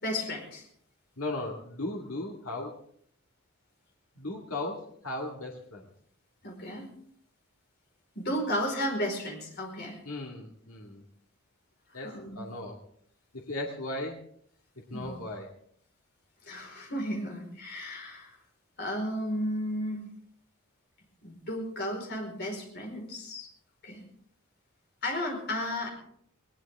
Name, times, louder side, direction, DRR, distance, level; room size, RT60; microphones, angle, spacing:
voice 1, 0.0-0.7 6.4-6.9 8.1-10.0 11.9-12.5 14.9-15.2 16.4-18.4 18.8-20.1 21.2-23.5 23.8-24.0 25.0-25.9, equal, 50° left, 2 dB, 4.8 m, -34 dB
voice 2, 1.2-2.8 4.2-5.8 10.0-11.0 11.9-12.8 13.3-14.2 14.9-15.5, left 2 dB, 75° left, -1 dB, 2.3 m, -37 dB
20.5 x 18.5 x 3.7 m, 0.65 s
head